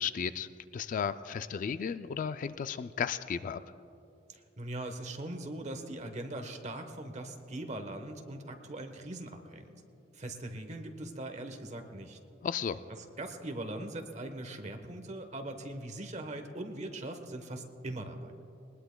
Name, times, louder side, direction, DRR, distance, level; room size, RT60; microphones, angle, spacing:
voice 1, 0.0-3.6 12.4-12.8, left 7 dB, 45° left, 12 dB, 0.3 m, -34 dB
voice 2, 4.3-9.7 10.1-12.2 13.2-18.3, right 1 dB, 40° right, 6 dB, 1.1 m, -41 dB
20.5 x 20.0 x 2.2 m, 2.8 s
head